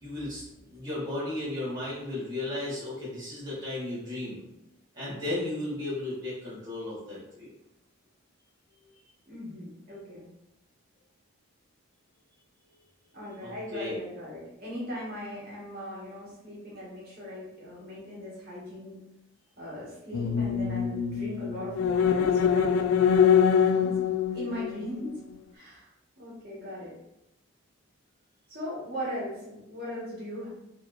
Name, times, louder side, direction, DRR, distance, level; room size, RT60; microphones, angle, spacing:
voice 1, 0.0-0.4 0.7-4.5 4.9-7.5 13.4-13.9, left 2 dB, 15° right, -11 dB, 1.3 m, -34 dB
voice 2, 9.3-10.3 13.1-19.0 19.6-24.0 24.3-25.2 25.5-25.9 26.2-26.9 28.5-30.5, equal, 45° right, -8 dB, 1.5 m, -39 dB
sound 1, 20.1-24.9, left 7 dB, 75° left, 0.3 m, -24 dB
4.2 x 3.0 x 2.5 m, 0.87 s
head